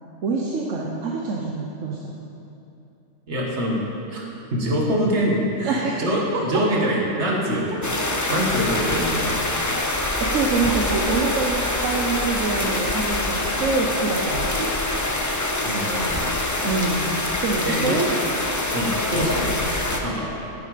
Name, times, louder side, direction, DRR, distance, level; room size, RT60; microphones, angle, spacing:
voice 1, 0.2-2.1 5.6-6.0 6.5-6.6 10.2-11.6 11.8-14.5 16.6-17.1 17.4-18.2, right 4 dB, 80° right, -2 dB, 1.2 m, -25 dB
voice 2, 3.3-3.8 4.1-4.2 4.5-9.4 15.6-16.3 17.7-18.0 18.7-20.3, equal, 65° right, -3 dB, 2.0 m, -25 dB
sound 1, 7.8-20.0, left 2 dB, 20° left, 0.6 m, -25 dB
10.5 x 8.8 x 5.0 m, 2.8 s
omnidirectional pair, 1.3 m